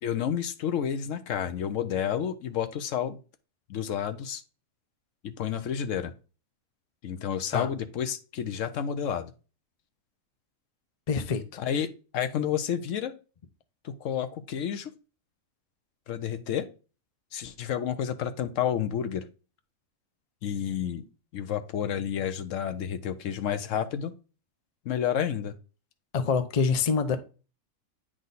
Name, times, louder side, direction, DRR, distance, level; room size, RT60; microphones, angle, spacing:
voice 1, 0.0-3.2 3.7-4.4 5.2-6.1 7.0-9.3 11.6-13.1 13.8-14.9 16.1-16.7 17.3-19.3 20.4-21.1 21.3-24.1 24.9-25.5, left 9 dB, 70° left, 0.9 m, -30 dB
voice 2, 11.1-11.6 26.1-27.2, left 5 dB, 45° left, 0.5 m, -26 dB
9.2 x 3.7 x 4.0 m
omnidirectional pair, 1.5 m